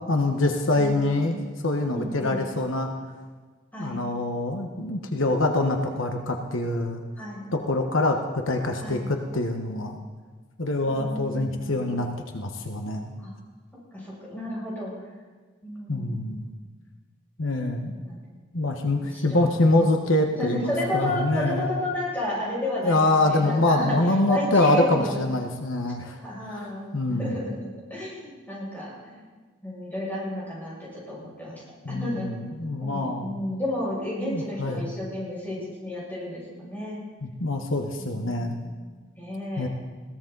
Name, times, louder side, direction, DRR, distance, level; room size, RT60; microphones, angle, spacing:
voice 1, 0.1-1.4 1.6-2.9 3.8-7.0 7.5-10.0 10.6-12.1 12.3-13.1 15.9-16.5 17.4-17.9 18.5-21.7 22.8-26.2 26.5-26.7 26.9-27.3 31.8-33.4 34.2-34.9 37.2-38.6 39.6-39.7, left 2 dB, 75° left, 4 dB, 1.3 m, -25 dB
voice 2, 0.7-1.3 1.9-2.4 3.7-4.0 7.2-7.4 8.8-9.1 10.8-11.9 13.2-13.3 13.9-14.9 15.6-16.5 17.9-18.2 19.0-19.9 20.3-24.0 24.3-25.1 26.2-29.2 29.6-32.3 32.6-37.0 38.0-39.7, left 1 dB, 10° left, -7 dB, 6.7 m, -32 dB
21.5 x 17.0 x 4.0 m, 1.4 s
head